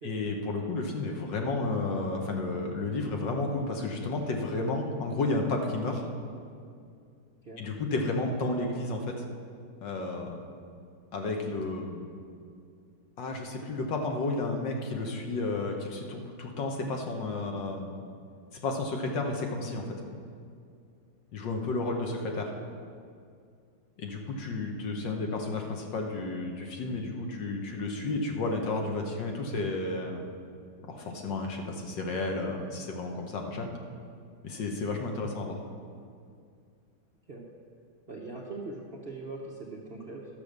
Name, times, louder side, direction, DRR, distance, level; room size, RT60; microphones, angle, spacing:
voice 1, 0.0-6.0 7.6-9.2 9.8-10.4 11.1-12.1 13.2-17.9 18.5-19.9 21.3-22.5 24.0-30.2 30.9-33.7 34.4-35.6, left 2 dB, 65° left, 2 dB, 1.6 m, -32 dB
voice 2, 38.1-40.3, right 3 dB, 45° right, -4 dB, 0.7 m, -41 dB
12.0 x 6.9 x 6.5 m, 2.3 s
omnidirectional pair, 2.3 m